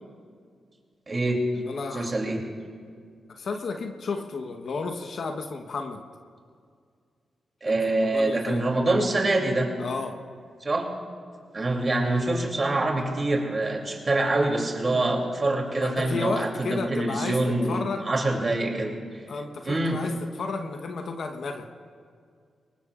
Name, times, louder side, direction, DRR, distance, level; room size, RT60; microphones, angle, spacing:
voice 1, 1.1-1.4 1.9-2.4 7.6-9.7 10.6-10.9 11.5-19.2 19.6-20.0, right 2 dB, 40° right, 1 dB, 2.9 m, -25 dB
voice 2, 1.6-2.1 3.3-6.0 7.6-8.6 9.8-10.2 15.8-17.4 17.7-18.1 19.3-21.6, left 4 dB, 65° left, 4 dB, 1.1 m, -32 dB
22.5 x 19.5 x 2.5 m, 2.2 s
cardioid pair, 65°, 0 cm